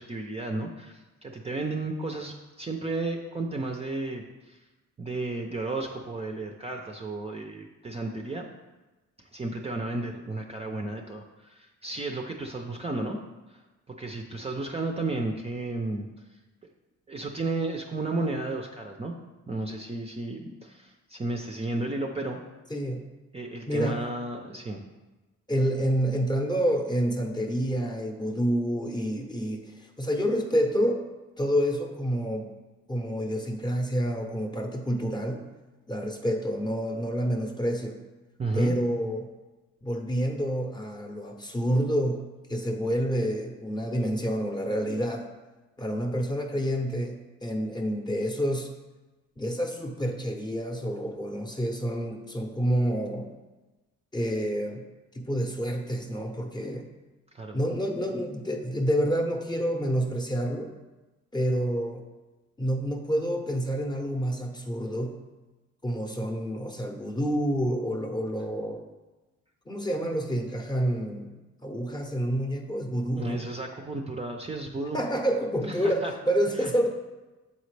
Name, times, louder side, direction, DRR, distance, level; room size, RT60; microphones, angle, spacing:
voice 1, 0.0-4.6 5.0-8.5 9.3-13.2 13.5-13.6 13.9-16.1 17.1-19.2 19.5-22.4 23.3-24.8 38.4-38.7 57.3-57.6 73.2-75.0 75.8-76.1 76.6-76.7, right 2 dB, 20° right, 2 dB, 0.5 m, -33 dB
voice 2, 22.7-23.1 23.7-24.0 25.5-31.0 31.4-32.5 32.9-35.4 35.9-38.0 38.5-39.3 39.8-42.2 42.5-45.3 45.8-48.7 49.4-53.3 54.1-54.8 55.1-56.8 57.5-60.7 61.3-62.0 62.6-65.2 65.8-68.8 69.7-71.3 71.6-73.4 74.9-76.9, equal, 15° left, 3 dB, 0.7 m, -28 dB
7.5 x 4.0 x 3.3 m, 1.1 s
cardioid pair, 90°, 30 cm